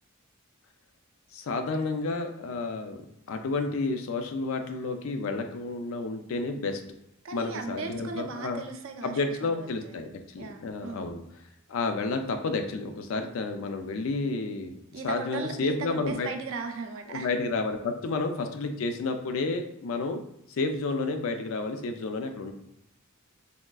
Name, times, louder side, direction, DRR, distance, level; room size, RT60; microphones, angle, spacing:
voice 1, 1.3-3.0 3.3-6.8 7.3-8.6 9.0-11.2 11.7-14.8 15.0-16.3 17.1-20.2 20.5-22.5, left 3 dB, 65° left, 6 dB, 0.4 m, -31 dB
voice 2, 7.2-10.0 10.4-11.1 14.9-17.3, right 4 dB, 65° right, 5 dB, 0.4 m, -38 dB
3.5 x 2.3 x 2.2 m, 0.79 s
head